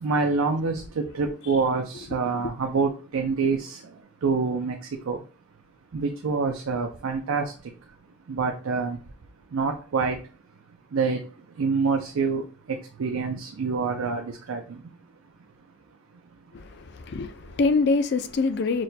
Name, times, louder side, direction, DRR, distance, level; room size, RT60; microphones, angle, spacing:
voice 1, 0.0-3.8 4.2-4.7 5.1-5.2 5.9-7.4 8.3-9.0 9.5-10.2 10.9-11.2 11.6-12.4 13.0-14.6, right 4 dB, 85° right, 0.5 m, -26 dB
voice 2, 16.5-18.8, left 3 dB, 50° left, 0.4 m, -25 dB
6.0 x 2.2 x 2.7 m
head